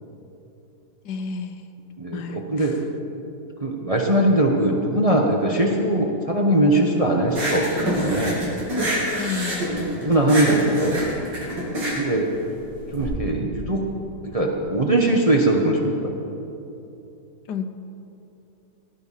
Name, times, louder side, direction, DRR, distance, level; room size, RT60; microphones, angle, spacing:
voice 1, 1.0-1.6 2.1-2.8 9.2-9.8 17.5-17.6, left 6 dB, 70° left, 8 dB, 1.3 m, -31 dB
voice 2, 2.0-2.8 3.6-8.4 9.6-11.0 12.0-12.3 12.9-13.8 14.2-16.1, right 1 dB, 25° right, 0 dB, 0.8 m, -21 dB
sound 1, 7.3-13.0, equal, 80° right, 3.7 m, -26 dB
16.5 x 10.0 x 5.6 m, 3.0 s
omnidirectional pair, 1.9 m